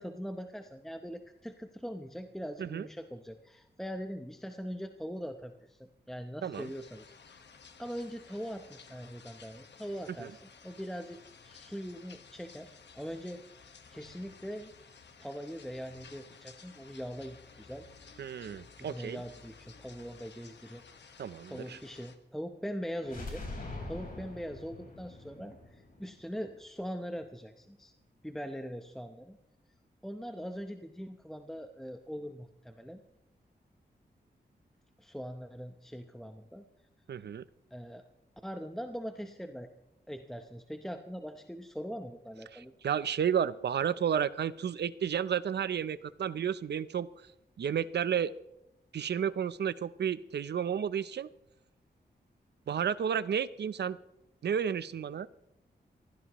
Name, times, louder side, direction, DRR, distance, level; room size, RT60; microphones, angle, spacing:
voice 1, 0.0-5.8 6.1-7.4 7.8-14.7 15.2-21.2 21.5-23.4 23.9-27.9 28.2-29.4 30.0-33.0 35.0-36.6 37.7-38.0 38.4-39.7 40.1-42.7, equal, ahead, 6 dB, 0.8 m, -42 dB
sound 1, 6.5-22.2, left 5 dB, 90° left, 1.4 m, -55 dB
voice 2, 18.2-19.2 21.2-21.8 37.1-37.4 42.5-47.1 47.6-48.3 48.9-51.3 52.7-54.0 54.4-55.3, right 8 dB, 75° right, 15 dB, 0.6 m, -32 dB
sound 2, 23.0-26.9, left 2 dB, 55° left, 4.7 m, -44 dB
24.0 x 15.5 x 3.1 m, 0.86 s
wide cardioid pair, 140°, 18 cm